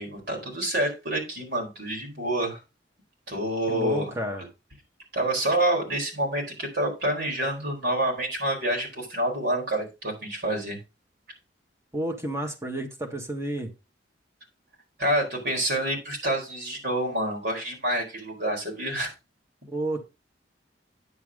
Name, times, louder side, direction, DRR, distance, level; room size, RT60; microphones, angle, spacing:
voice 1, 0.0-2.6 3.3-4.1 5.1-10.8 15.0-19.1, right 1 dB, 65° right, 4.2 m, -27 dB
voice 2, 3.7-4.4 11.9-13.7 19.7-20.0, right 1 dB, 15° right, 1.6 m, -31 dB
9.5 x 7.2 x 3.6 m
head